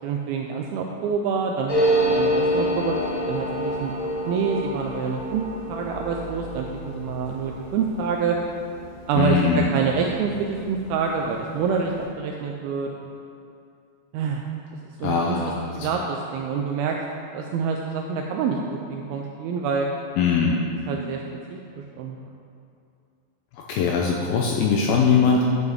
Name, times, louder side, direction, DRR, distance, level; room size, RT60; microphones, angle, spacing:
voice 1, 0.0-4.0 4.3-5.4 5.7-8.4 9.1-12.9 14.1-14.5 15.0-15.4 15.8-17.0 17.3-18.6 18.9-19.9 20.9-21.2 21.5-22.2, right 6 dB, 85° right, 1 dB, 2.2 m, -27 dB
sound 1, 1.7-10.8 11.1-11.2 11.4-12.0, equal, 60° left, 1.2 m, -28 dB
voice 2, 9.2-9.7 15.0-15.7 20.2-20.6 23.7-25.4, left 6 dB, 85° left, -1 dB, 2.2 m, -21 dB
9.8 x 9.5 x 3.6 m, 2.5 s
omnidirectional pair, 4.9 m